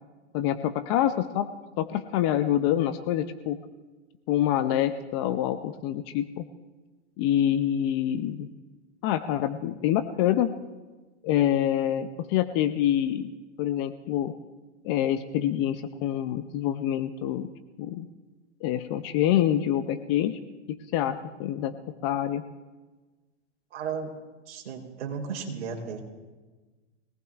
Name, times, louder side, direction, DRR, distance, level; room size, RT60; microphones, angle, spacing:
voice 1, 0.3-1.5 1.8-3.6 4.3-6.4 7.2-8.5 9.0-10.5 11.2-13.3 13.6-14.3 14.8-17.5 17.8-18.1 18.6-20.4 20.7-21.7 22.0-22.4, left 11 dB, 25° left, 11 dB, 0.4 m, -26 dB
voice 2, 23.7-24.1 24.5-26.0, right 6 dB, 65° right, 1 dB, 3.6 m, -34 dB
23.5 x 18.5 x 2.4 m, 1.3 s
hypercardioid pair, 135°, 36 cm